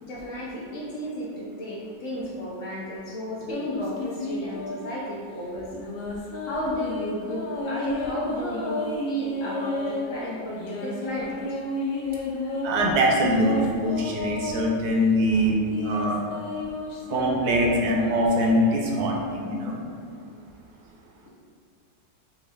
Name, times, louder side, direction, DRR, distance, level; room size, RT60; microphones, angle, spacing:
voice 1, 0.0-5.7 6.4-11.6, left 1 dB, 65° left, -6 dB, 0.8 m, -33 dB
sound 1, 3.5-5.0 5.7-10.1 10.6-14.7 15.3-19.6, left 2 dB, 80° left, 1.4 m, -32 dB
voice 2, 12.6-16.2 17.1-19.8, equal, 70° right, -1 dB, 1.0 m, -23 dB
4.4 x 2.9 x 3.4 m, 2.4 s
omnidirectional pair, 2.0 m